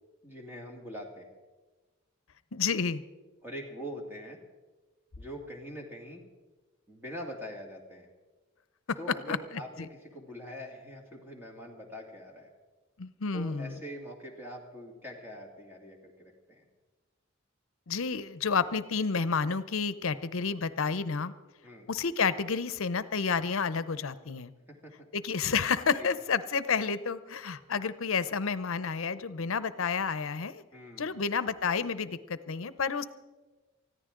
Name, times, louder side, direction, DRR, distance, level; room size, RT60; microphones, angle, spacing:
voice 1, 0.2-1.4 3.4-4.4 5.2-6.2 6.9-8.1 9.0-12.5 13.3-16.7 21.6-21.9 24.8-24.9 26.0-26.1 30.7-31.2, equal, 10° right, 1 dB, 2.2 m, -43 dB
voice 2, 2.5-3.0 8.9-9.0 9.3-9.4 9.8-9.9 13.0-13.8 17.9-21.3 21.9-24.5 25.1-30.6 31.0-33.0, left 5 dB, 70° left, 15 dB, 0.7 m, -30 dB
20.0 x 14.5 x 3.8 m, 1.2 s
head